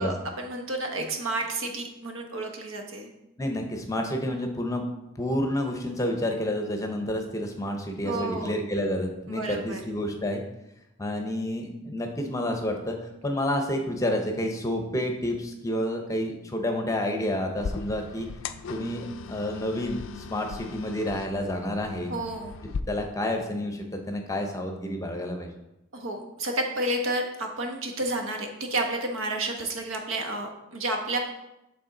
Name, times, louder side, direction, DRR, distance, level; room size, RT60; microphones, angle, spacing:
voice 1, 0.0-3.1 8.0-8.5 9.3-9.8 22.1-22.5 25.9-31.2, right 2 dB, 90° right, 3 dB, 1.0 m, -31 dB
voice 2, 3.4-4.8 5.2-10.4 11.0-18.3 18.7-22.1 22.9-25.5, left 1 dB, 15° left, 3 dB, 0.7 m, -29 dB
sound 1, 17.6-22.8, left 5 dB, 75° left, 0.3 m, -38 dB
8.4 x 3.6 x 3.8 m, 0.90 s
head